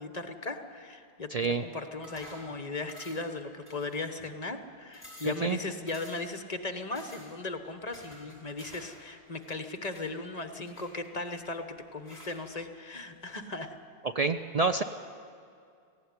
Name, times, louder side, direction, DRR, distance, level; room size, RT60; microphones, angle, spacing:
voice 1, 0.0-1.3 1.6-13.8, left 3 dB, 40° left, 8 dB, 1.2 m, -37 dB
voice 2, 1.3-1.6 5.2-5.6 14.0-14.8, right 4 dB, 45° right, 8 dB, 0.6 m, -28 dB
sound 1, 2.0-2.5 2.9-3.3 3.7-4.3 4.6-4.7 4.9-5.4 5.9-6.3 6.9-7.3 7.9-9.0 9.3-10.1 10.7-11.4 12.0-12.4, equal, 10° left, 7.5 m, -50 dB
18.5 x 15.5 x 9.5 m, 2.3 s
omnidirectional pair, 1.0 m